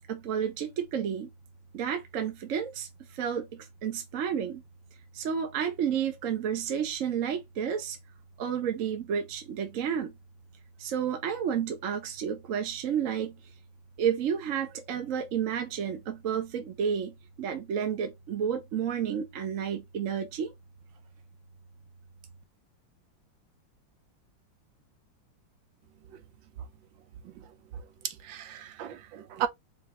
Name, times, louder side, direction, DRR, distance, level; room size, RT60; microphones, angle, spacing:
voice 1, 0.1-1.3 1.7-2.9 3.1-4.6 5.1-8.0 8.4-10.1 10.8-13.3 14.0-20.5, right 8 dB, 60° right, 0.9 m, -31 dB
voice 2, 27.7-29.5, right 10 dB, 75° right, 1.5 m, -36 dB
5.3 x 2.5 x 2.9 m
omnidirectional pair, 2.1 m